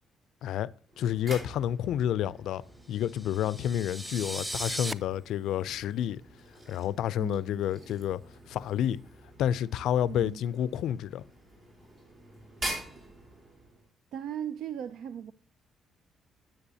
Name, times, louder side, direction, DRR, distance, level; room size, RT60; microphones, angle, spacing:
sound 1, 0.9-13.9, right 1 dB, 45° right, 4.2 m, -45 dB
voice 1, 1.0-2.6 2.9-6.2 6.7-8.2 8.5-9.0 9.4-11.2, left 10 dB, 80° left, 0.3 m, -29 dB
sound 2, 3.0-4.9, right 1 dB, 10° right, 0.5 m, -37 dB
voice 2, 7.2-7.6 10.1-10.4 12.9-13.1 14.1-15.3, right 9 dB, 80° right, 0.4 m, -38 dB
9.8 x 7.7 x 2.7 m
cardioid pair, 90°, 0 cm